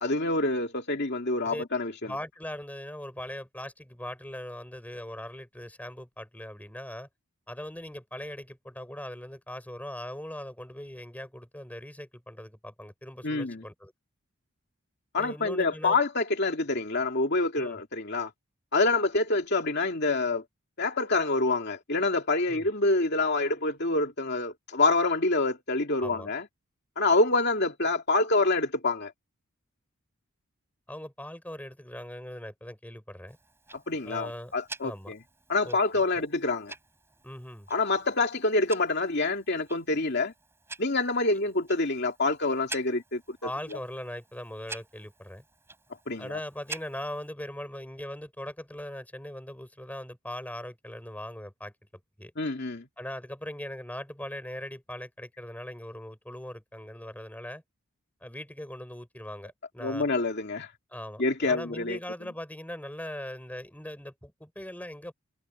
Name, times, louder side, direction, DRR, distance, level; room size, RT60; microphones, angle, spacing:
voice 1, 0.0-2.1 13.2-13.6 15.1-18.3 18.7-20.4 20.8-26.5 27.0-29.1 33.7-35.2 35.5-36.7 37.7-40.3 40.8-43.5 46.1-46.3 52.4-52.8 59.8-60.7 61.2-62.0, left 3 dB, 50° left, 2.6 m, -27 dB
voice 2, 2.0-7.1 7.5-13.9 15.2-16.0 17.5-17.8 22.5-22.6 26.0-26.3 30.9-33.4 34.0-34.5 34.8-35.1 35.6-36.2 37.2-37.7 43.4-45.4 46.2-51.7 52.2-52.3 53.0-57.6 58.2-60.1 60.9-65.1, left 1 dB, 5° left, 4.5 m, -40 dB
Tick-tock, 33.3-47.3, right 3 dB, 10° right, 6.2 m, -48 dB
head